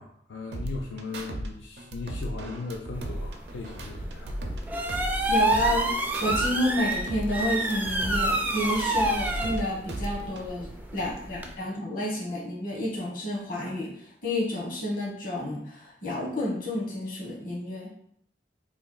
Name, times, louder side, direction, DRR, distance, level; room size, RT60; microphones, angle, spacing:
voice 1, 0.0-4.4, left 4 dB, 85° left, 1 dB, 0.4 m, -38 dB
sound 1, 0.5-1.5 1.8-4.6 4.9-6.5 6.8-9.6 9.9-10.5, right 1 dB, 65° right, 0.5 m, -35 dB
sound 2, 3.0-11.5, right 2 dB, 10° right, 0.3 m, -29 dB
voice 2, 5.3-17.9, left 1 dB, 50° left, -4 dB, 1.2 m, -30 dB
3.3 x 2.5 x 3.8 m, 0.69 s
head